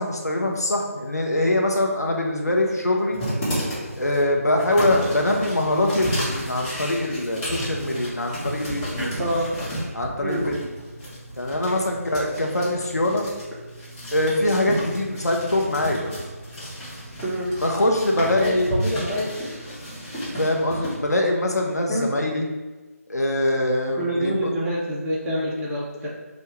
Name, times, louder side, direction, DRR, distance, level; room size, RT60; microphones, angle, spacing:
voice 1, 0.0-3.2 4.0-9.1 9.9-10.6 11.4-13.3 14.1-16.1 17.6-18.7 20.4-22.5 23.1-24.5, left 1 dB, 90° left, 0 dB, 0.7 m, -23 dB
sound 1, 3.1-20.9, equal, 15° left, 0.8 m, -32 dB
voice 2, 9.0-9.5 10.2-10.4 17.2-17.5 18.4-19.3 21.9-22.1 24.0-26.1, equal, 5° right, -6 dB, 0.4 m, -26 dB
5.0 x 2.2 x 3.0 m, 1.2 s
figure-of-eight pair, 155°, 8 cm